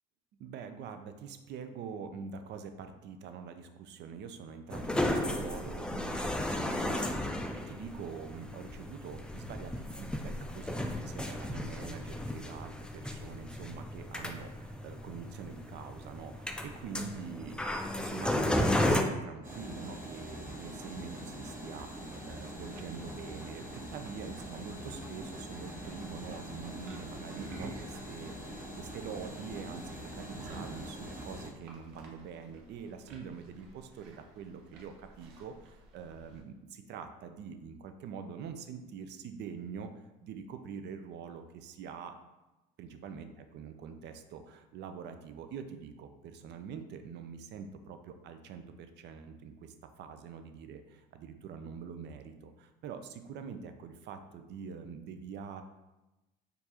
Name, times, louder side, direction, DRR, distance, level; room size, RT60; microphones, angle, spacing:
voice 1, 0.4-7.4 7.7-42.2 42.8-55.6, right 6 dB, 60° right, 8 dB, 0.5 m, -45 dB
sound 1, 4.7-19.0, left 1 dB, 5° left, 0.3 m, -34 dB
sound 2, 19.4-31.5, equal, 40° right, 1.1 m, -44 dB
sound 3, 22.4-36.4, right 3 dB, 90° right, 0.8 m, -52 dB
4.5 x 2.6 x 2.8 m, 1.0 s
supercardioid pair, 95°, 21 cm